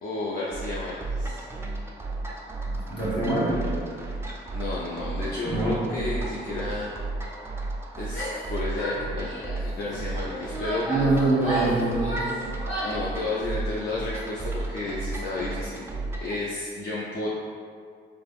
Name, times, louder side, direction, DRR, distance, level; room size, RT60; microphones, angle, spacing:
voice 1, 0.0-1.4 4.5-6.9 8.0-9.3 9.6-10.9 12.8-15.8 16.2-17.3, left 2 dB, 50° left, -6 dB, 0.4 m, -32 dB
sound 1, 0.5-16.4, right 2 dB, 10° right, 0.3 m, -34 dB
voice 2, 2.9-3.6 5.4-5.7 10.9-12.2, right 2 dB, 25° left, -9 dB, 1.4 m, -24 dB
Female speech woman speaking / Yell, 8.0-8.5 8.8-9.6 10.3-13.1, right 1 dB, 80° left, 1.0 m, -32 dB
3.3 x 2.0 x 2.3 m, 2.1 s
cardioid pair, 90°, 20 cm